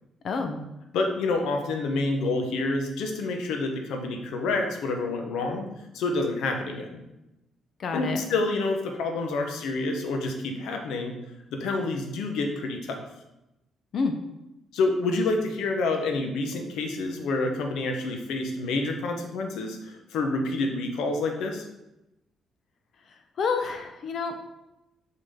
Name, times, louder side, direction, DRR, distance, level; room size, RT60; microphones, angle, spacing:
voice 1, 0.2-0.6 7.8-8.2 13.9-14.1 23.4-24.4, left 5 dB, 60° left, 6 dB, 0.9 m, -28 dB
voice 2, 0.9-5.7 5.9-7.0 7.9-11.1 11.5-13.0 14.7-21.7, left 3 dB, 85° left, 3 dB, 1.0 m, -28 dB
5.9 x 5.6 x 3.7 m, 0.92 s
cardioid pair, 90°, 0 cm